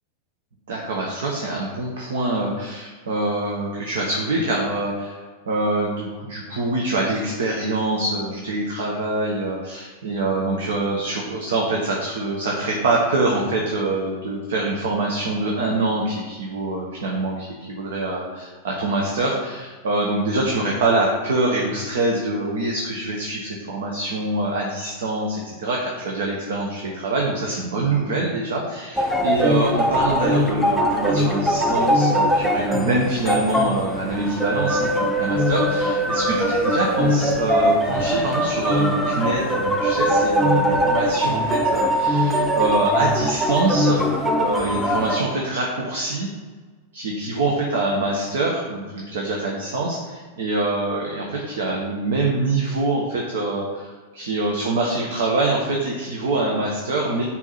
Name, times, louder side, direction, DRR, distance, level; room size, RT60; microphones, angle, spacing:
voice 1, 0.7-5.1 5.5-44.0 44.4-46.3 46.9-57.2, right 2 dB, 60° right, -1 dB, 1.0 m, -25 dB
sound 1, 29.0-45.2, equal, ahead, 0.7 m, -21 dB
4.6 x 4.2 x 5.8 m, 1.4 s
figure-of-eight pair, 90°, 0 cm